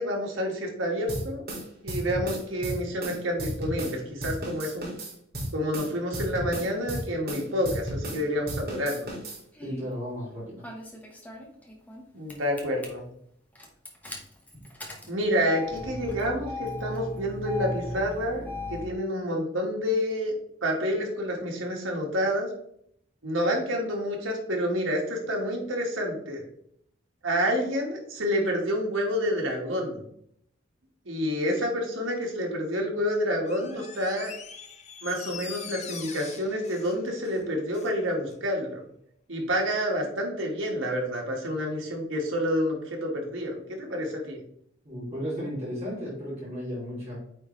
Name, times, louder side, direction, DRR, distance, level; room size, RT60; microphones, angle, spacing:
voice 1, 0.0-1.4 1.8-4.9 5.5-9.1 12.1-13.1 15.1-20.3 20.6-22.5 23.2-26.4 27.2-30.0 31.0-34.3 35.0-38.8 39.3-44.4, equal, 90° right, 0 dB, 1.7 m, -28 dB
sound 1, 1.1-4.0 4.2-8.2 8.5-9.4, right 1 dB, 50° right, 2.3 m, -34 dB
Engine starting, 9.3-9.9 10.6-12.0 12.3-12.9 13.5-18.9, left 1 dB, 10° left, 1.0 m, -37 dB
voice 2, 9.6-10.6 44.8-47.2, equal, 35° right, -8 dB, 2.7 m, -34 dB
Door, 33.4-38.0 38.3-38.4, left 6 dB, 35° left, 0.6 m, -43 dB
8.7 x 3.7 x 3.1 m, 0.69 s
head